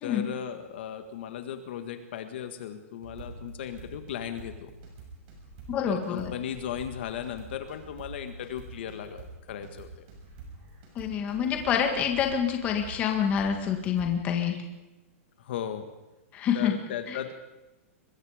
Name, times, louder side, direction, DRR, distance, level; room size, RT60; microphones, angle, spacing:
voice 1, 0.0-4.7 5.9-9.9 15.4-15.9 16.5-17.3, left 9 dB, 50° left, 8 dB, 1.8 m, -36 dB
sound 1, 3.0-14.4, right 3 dB, 35° right, 6.3 m, -46 dB
voice 2, 5.7-6.3 11.0-14.6 16.3-16.8 17.1-17.2, left 8 dB, 20° left, 4 dB, 2.0 m, -27 dB
24.0 x 21.5 x 5.1 m, 1.0 s
supercardioid pair, 175°, 8 cm